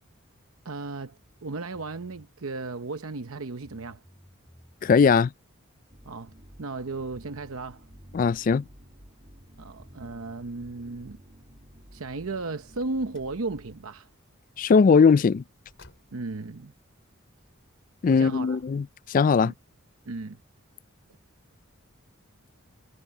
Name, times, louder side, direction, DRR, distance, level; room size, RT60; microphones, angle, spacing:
voice 1, 0.6-4.0 6.1-6.3 6.6-7.8 9.6-11.2 11.9-14.1 16.1-16.7 18.1-18.6 19.4-19.5 20.1-20.4, right 3 dB, 80° right, 0.8 m, -35 dB
sound 1, 1.7-2.3 3.3-3.4 3.6-5.3 7.5-7.6 7.9-8.5 9.8-11.5, equal, ahead, 7.5 m, -55 dB
voice 2, 4.8-5.3 8.1-8.6 14.6-15.4 18.0-19.5, left 5 dB, 40° left, 0.3 m, -19 dB
sound 2, 5.9-14.2, equal, 35° right, 6.4 m, -53 dB
Car, 12.7-13.4 15.6-16.4, left 3 dB, 60° left, 4.1 m, -56 dB
head